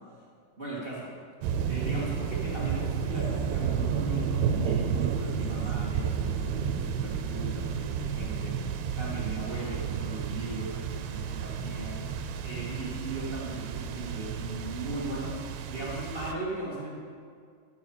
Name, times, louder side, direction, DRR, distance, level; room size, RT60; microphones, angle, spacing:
voice 1, 0.6-1.1 1.7-8.6 9.0-15.4 15.6-16.9, right 2 dB, 45° right, -7 dB, 0.7 m, -38 dB
sound 1, 1.4-16.3, right 7 dB, 90° right, 2.6 m, -31 dB
14.0 x 8.2 x 4.9 m, 2.2 s
omnidirectional pair, 4.4 m